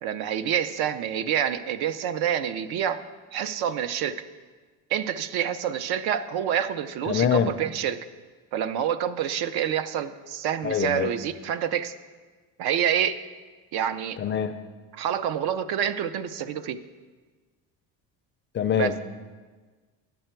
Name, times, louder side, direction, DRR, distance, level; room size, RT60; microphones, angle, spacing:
voice 1, 0.0-3.0 3.3-4.2 4.9-8.0 8.5-11.9 12.6-13.2 13.7-14.2 14.9-16.8 18.8-18.9, right 9 dB, 75° right, 12 dB, 0.6 m, -27 dB
voice 2, 7.1-7.5 10.6-11.1 14.2-14.5 18.5-19.0, left 8 dB, 30° left, 9 dB, 0.4 m, -24 dB
10.5 x 7.8 x 4.5 m, 1.4 s
cardioid pair, 150°, 38 cm